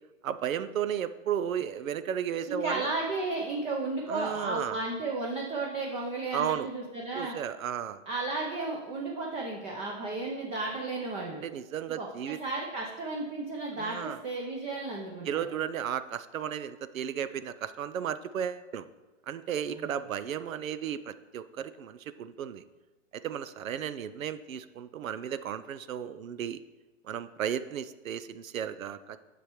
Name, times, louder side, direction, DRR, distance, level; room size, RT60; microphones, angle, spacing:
voice 1, 0.2-2.9 4.1-4.8 6.3-6.7 7.2-8.0 11.4-12.4 13.8-14.2 15.3-18.9 19.3-22.6 23.1-26.6 27.0-29.2, right 9 dB, 90° right, 13 dB, 0.6 m, -34 dB
voice 2, 2.5-7.4 8.1-11.4 12.0-15.4 19.7-19.9, right 3 dB, 15° right, -1 dB, 0.6 m, -34 dB
9.9 x 6.8 x 3.1 m, 1.1 s
hypercardioid pair, 140°, 39 cm